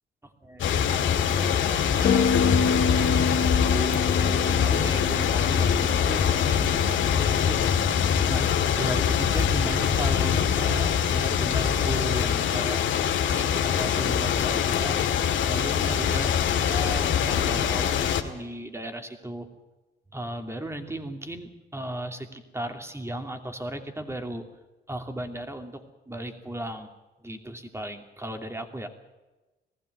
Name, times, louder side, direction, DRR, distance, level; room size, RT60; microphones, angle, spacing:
voice 1, 0.2-2.2 2.6-7.6 8.3-8.5 8.7-12.8 13.3-15.0 15.5-19.5 20.1-24.4 24.9-26.9 27.2-28.9, right 1 dB, 15° right, 6 dB, 2.7 m, -36 dB
sound 1, 0.6-18.2, left 8 dB, 75° left, 2.0 m, -24 dB
sound 2, 2.0-6.4, left 5 dB, 50° left, 3.2 m, -27 dB
sound 3, 2.7-12.1, right 4 dB, 50° right, 5.0 m, -43 dB
19.5 x 15.0 x 9.4 m, 1.1 s
cardioid pair, 90°, 20 cm